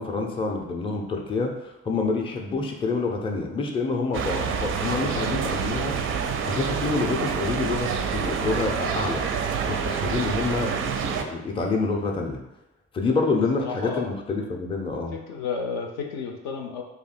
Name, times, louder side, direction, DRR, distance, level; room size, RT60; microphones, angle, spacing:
voice 1, 0.0-5.9 6.4-9.2 9.6-12.4 12.9-15.1, left 3 dB, 15° left, 1 dB, 0.5 m, -27 dB
sound 1, 4.1-11.2, right 6 dB, 35° right, 0.4 m, -27 dB
voice 2, 13.6-14.1 15.1-16.8, left 5 dB, 60° left, 2 dB, 0.6 m, -32 dB
2.7 x 2.4 x 4.0 m, 0.92 s
figure-of-eight pair, 45°, 37 cm